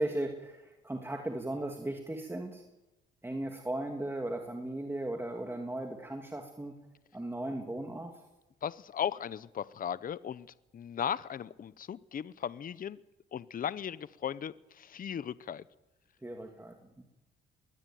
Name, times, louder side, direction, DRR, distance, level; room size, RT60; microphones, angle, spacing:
voice 1, 0.0-2.6 3.2-6.7 7.1-8.1 16.2-17.0, right 1 dB, 10° right, 2 dB, 2.9 m, -37 dB
voice 2, 8.6-10.5 10.7-13.0 13.3-15.6, left 8 dB, 45° left, 17 dB, 0.8 m, -37 dB
21.5 x 19.5 x 9.3 m, 0.98 s
cardioid pair, 90°, 20 cm